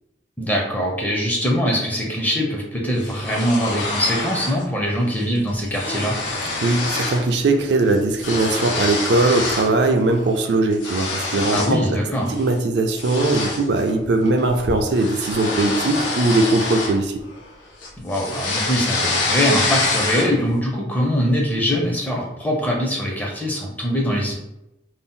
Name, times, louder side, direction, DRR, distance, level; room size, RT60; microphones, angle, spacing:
voice 1, 0.4-6.2 11.5-12.3 18.0-24.3, equal, 10° left, -1 dB, 0.4 m, -22 dB
sound 1, 3.0-4.6 5.0-5.2 5.5-7.3 7.6-9.8 10.2-11.8 12.3-12.5 12.9-17.5 17.8-20.5, left 3 dB, 85° left, 0.6 m, -26 dB
voice 2, 6.6-11.8 12.3-17.1, right 2 dB, 65° right, 5 dB, 0.4 m, -20 dB
2.6 x 2.0 x 3.5 m, 0.89 s
head